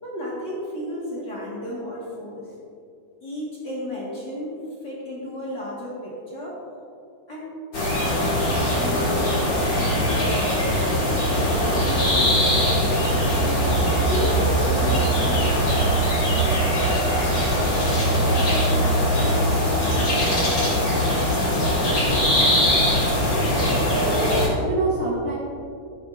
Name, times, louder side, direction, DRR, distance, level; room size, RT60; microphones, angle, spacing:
voice 1, 0.0-2.5 3.2-6.6 7.3-7.5 7.9-10.6 11.0-13.1 13.9-15.6, equal, 55° left, -6 dB, 1.1 m, -33 dB
sound 1, 7.7-24.5, equal, 35° left, 2.3 m, -21 dB
voice 2, 24.0-25.3, right 2 dB, 45° right, -11 dB, 2.7 m, -26 dB
13.5 x 10.5 x 2.5 m, 2.4 s
omnidirectional pair, 4.5 m